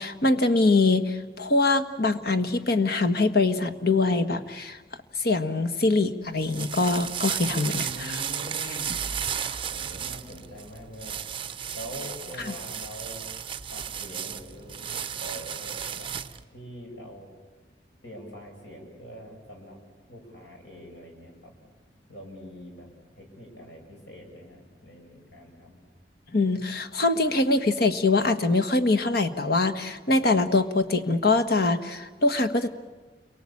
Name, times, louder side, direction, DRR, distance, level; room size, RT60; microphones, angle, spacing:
voice 1, 0.0-4.8 5.2-8.1 26.3-32.7, left 3 dB, 60° left, 10 dB, 1.5 m, -23 dB
sound 1, 6.2-16.4, right 8 dB, 30° right, 0.9 m, -34 dB
voice 2, 7.7-9.0 9.7-11.2 11.7-13.2 13.7-16.1 16.5-17.3 18.0-19.8 20.1-21.5 22.1-22.9 23.1-25.8, equal, 85° left, 1 dB, 6.8 m, -43 dB
29.5 x 23.5 x 8.6 m, 1.3 s
head